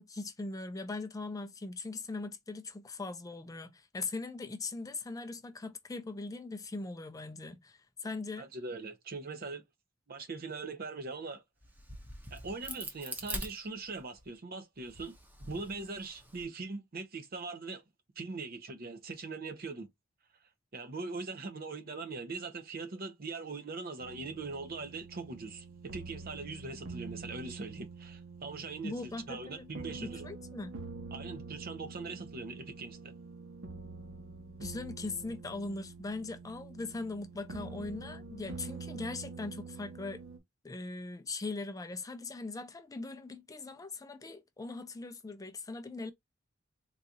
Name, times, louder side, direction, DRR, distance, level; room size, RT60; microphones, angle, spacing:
voice 1, 0.0-8.5 28.8-30.8 34.6-40.2 40.6-46.1, left 3 dB, 15° left, 0.4 m, -40 dB
voice 2, 8.4-9.6 10.1-11.4 12.3-15.1 15.4-17.8 18.2-19.9 20.7-30.3 31.1-33.1, right 3 dB, 50° right, 0.7 m, -41 dB
Crack, 11.6-14.3 14.8-16.4, right 1 dB, 10° right, 0.7 m, -43 dB
sound 1, 24.0-40.4, right 4 dB, 90° right, 0.9 m, -46 dB
3.9 x 2.4 x 2.8 m
head